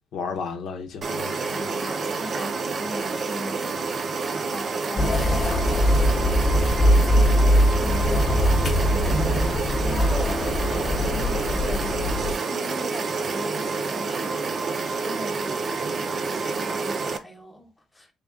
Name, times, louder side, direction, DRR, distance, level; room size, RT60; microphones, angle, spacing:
voice 1, 0.1-1.7 9.2-9.7, left 5 dB, 80° left, 0.7 m, -34 dB
sound 1, 1.0-17.2, right 4 dB, 50° right, 0.5 m, -28 dB
voice 2, 1.4-3.9 4.5-5.4 5.7-7.4 7.8-8.6 8.9-14.3 14.7-15.7 15.9-18.1, equal, 10° left, 1.0 m, -39 dB
sound 2, 5.0-12.3, equal, 40° left, 0.6 m, -21 dB
3.5 x 2.3 x 3.6 m
cardioid pair, 90°, 0 cm